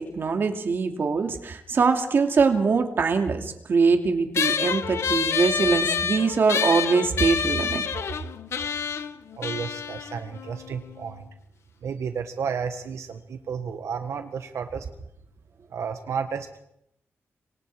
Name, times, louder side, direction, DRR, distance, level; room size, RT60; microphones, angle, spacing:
voice 1, 0.0-7.8, right 4 dB, 50° right, 5 dB, 2.7 m, -23 dB
sound 1, 4.3-11.1, left 7 dB, 65° left, 1.3 m, -28 dB
voice 2, 9.4-11.3 11.8-14.9 15.7-16.6, right 6 dB, 80° right, 7 dB, 1.7 m, -32 dB
26.5 x 25.0 x 4.9 m, 0.77 s
wide cardioid pair, 170°, 5 cm